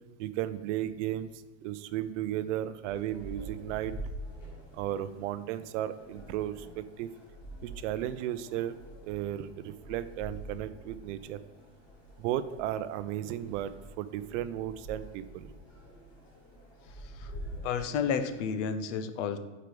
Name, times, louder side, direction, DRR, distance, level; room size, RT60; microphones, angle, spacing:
voice 1, 0.2-3.9 4.7-7.1 7.6-8.8 9.0-11.4 12.2-15.5, right 12 dB, 75° right, 13 dB, 0.5 m, -34 dB
sound 1, 2.8-18.4, right 1 dB, 35° left, 1.8 m, -46 dB
voice 2, 17.6-19.4, left 6 dB, 70° left, 10 dB, 0.7 m, -31 dB
4.7 x 4.7 x 5.0 m, 1.2 s
supercardioid pair, 145°, 37 cm